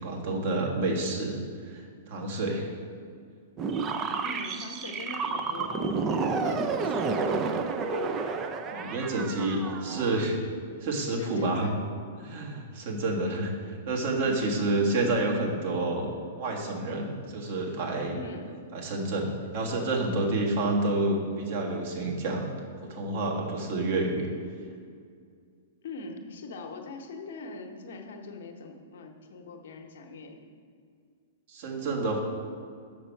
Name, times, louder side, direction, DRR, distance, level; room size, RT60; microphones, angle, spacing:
voice 1, 0.0-1.4 1.7-2.7 8.7-10.4 10.8-11.7 12.2-16.1 16.4-18.2 18.7-22.5 22.9-24.3 31.5-32.2, right 2 dB, 50° right, -1 dB, 1.7 m, -29 dB
sound 1, 3.6-10.3, right 4 dB, 30° right, 0.5 m, -30 dB
voice 2, 4.2-7.3 11.1-11.8 14.2-14.6 18.1-18.5 25.8-30.4, left 3 dB, 60° left, 5 dB, 0.9 m, -41 dB
7.2 x 6.1 x 4.6 m, 2.2 s
figure-of-eight pair, 105°, 0 cm